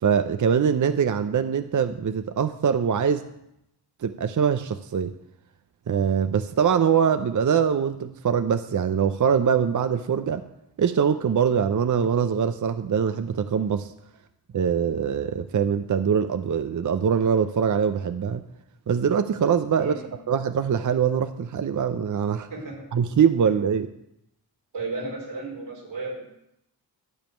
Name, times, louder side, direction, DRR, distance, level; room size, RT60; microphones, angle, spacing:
voice 1, 0.0-3.3 4.0-5.1 5.9-10.4 10.8-13.9 14.5-18.4 18.9-22.5 22.9-23.9, right 7 dB, 45° right, 10 dB, 0.7 m, -23 dB
voice 2, 24.7-26.2, right 3 dB, 90° right, -3 dB, 4.9 m, -33 dB
12.5 x 5.2 x 8.8 m, 0.81 s
cardioid pair, 60°, 42 cm